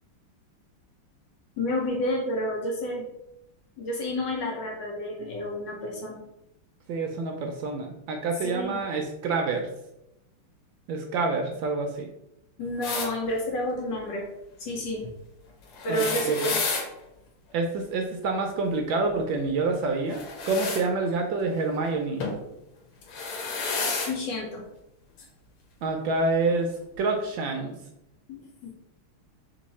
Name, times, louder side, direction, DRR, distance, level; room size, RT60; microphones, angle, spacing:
voice 1, 1.6-3.1 3.8-6.2 8.4-8.8 12.6-14.3 14.6-15.1 15.8-16.6 24.1-24.6 28.3-28.7, left 1 dB, 65° left, 0 dB, 1.3 m, -30 dB
voice 2, 6.9-9.7 10.9-12.1 15.9-16.5 17.5-22.2 25.8-26.7 27.0-27.8, right 3 dB, 75° right, 3 dB, 1.2 m, -27 dB
sound 1, 12.8-13.1 15.7-16.9 20.1-20.8 22.2-22.4 23.0-24.1 25.2-25.3 26.5-26.6, left 4 dB, 80° left, 1.7 m, -30 dB
3.7 x 3.0 x 4.1 m, 0.85 s
omnidirectional pair, 2.4 m